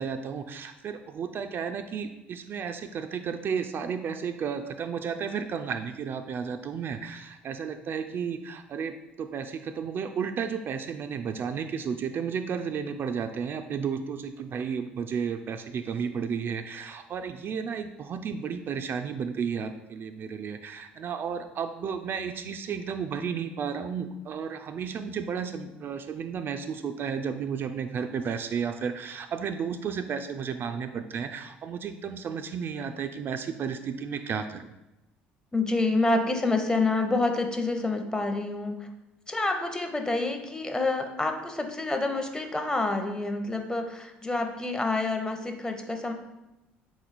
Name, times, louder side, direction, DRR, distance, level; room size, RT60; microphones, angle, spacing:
voice 1, 0.0-34.7, right 6 dB, 45° right, 8 dB, 0.3 m, -33 dB
voice 2, 35.5-38.9 39.3-46.1, left 2 dB, 15° left, 5 dB, 0.7 m, -28 dB
4.0 x 3.0 x 4.0 m, 0.96 s
hypercardioid pair, 70°, 5 cm